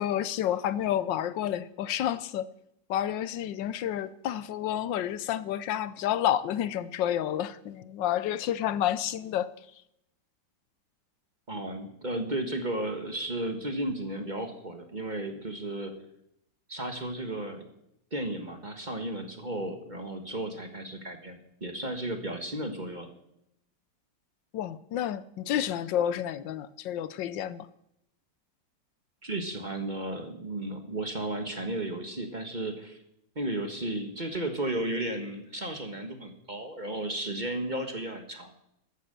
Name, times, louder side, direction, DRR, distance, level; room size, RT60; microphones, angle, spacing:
voice 1, 0.0-2.5 2.9-9.5 24.5-27.7, left 11 dB, 80° left, 16 dB, 1.3 m, -30 dB
voice 2, 11.5-15.9 16.7-17.6 18.1-23.1 29.2-33.0 33.3-38.5, right 1 dB, 25° right, 5 dB, 1.4 m, -34 dB
14.0 x 10.0 x 6.7 m, 0.80 s
omnidirectional pair, 2.0 m